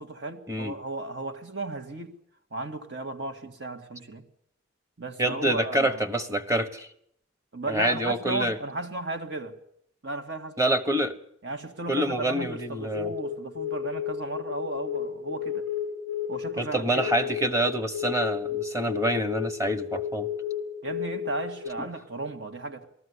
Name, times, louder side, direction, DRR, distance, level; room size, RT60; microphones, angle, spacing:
voice 1, 0.0-2.2 2.5-4.2 5.0-6.0 7.5-9.5 10.0-10.7 11.4-15.7 16.3-17.3 20.8-22.9, right 2 dB, 60° right, 2.0 m, -35 dB
voice 2, 5.2-6.9 7.7-8.6 10.6-11.2 11.9-13.1 16.6-20.3 21.8-21.9, right 1 dB, 15° right, 1.2 m, -26 dB
sound 1, 12.3-21.7, left 8 dB, 85° right, 8.0 m, -33 dB
19.0 x 14.0 x 9.7 m
head